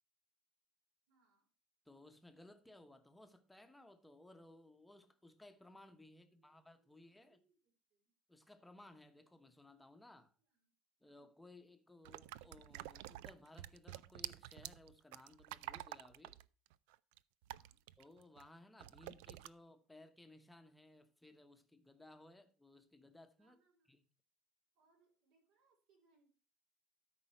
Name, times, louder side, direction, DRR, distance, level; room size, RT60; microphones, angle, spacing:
voice 1, 1.1-1.5 6.2-8.1 10.5-11.3 17.5-17.8 23.4-24.0 24.7-26.3, right 3 dB, 70° right, 4.8 m, -78 dB
voice 2, 1.8-7.4 8.3-10.3 11.0-16.4 18.0-23.6 23.9-24.0, left 2 dB, 5° left, 1.0 m, -60 dB
sound 1, 12.0-18.5 18.8-19.5, right 16 dB, 90° right, 0.4 m, -49 dB
13.0 x 5.5 x 4.4 m
cardioid pair, 155°, 0 cm